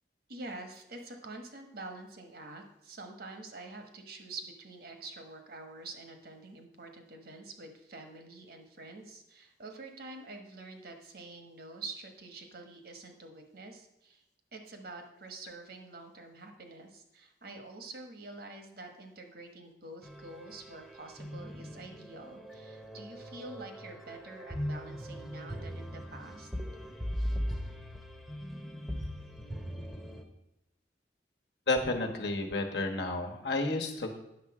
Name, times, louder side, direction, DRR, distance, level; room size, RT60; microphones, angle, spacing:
voice 1, 0.3-14.2 14.5-26.5, right 2 dB, 60° right, 5 dB, 1.3 m, -47 dB
sound 1, 20.0-30.2, equal, ahead, 0.9 m, -39 dB
voice 2, 31.7-34.2, left 2 dB, 70° left, 3 dB, 1.3 m, -31 dB
9.4 x 6.7 x 4.8 m, 0.88 s
head